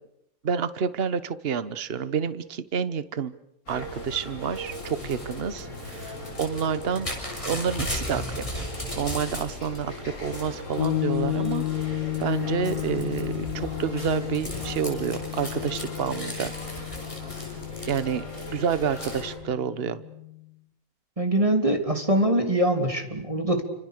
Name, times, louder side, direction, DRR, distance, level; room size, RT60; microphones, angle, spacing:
voice 1, 0.4-3.3 3.7-7.2 7.4-8.6 9.0-16.5 17.9-20.0, right 7 dB, 40° right, 14 dB, 1.2 m, -29 dB
sound 1, 3.7-19.4, left 1 dB, 50° left, 6.0 m, -39 dB
Crumpling crinkling / Tearing, 4.5-9.8 10.1-10.9 11.4-11.8 12.1-18.4 19.0-19.2, equal, 15° left, 6.5 m, -37 dB
sound 2, 10.8-20.5, left 16 dB, 80° left, 2.0 m, -33 dB
voice 2, 21.2-23.6, right 1 dB, 15° right, 4 dB, 3.3 m, -23 dB
29.5 x 26.0 x 6.7 m, 0.79 s
omnidirectional pair, 2.0 m